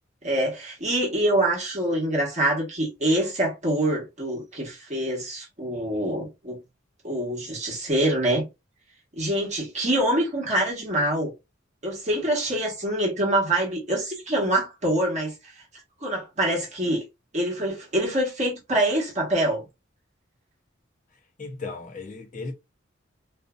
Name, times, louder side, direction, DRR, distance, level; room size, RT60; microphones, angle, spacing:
voice 1, 0.2-6.6 7.0-8.5 9.2-11.3 11.8-15.5 16.0-17.0 17.3-19.6, right 1 dB, 35° right, 1.0 m, -25 dB
voice 2, 21.4-22.5, left 3 dB, 40° left, 0.6 m, -35 dB
2.5 x 2.4 x 2.2 m
head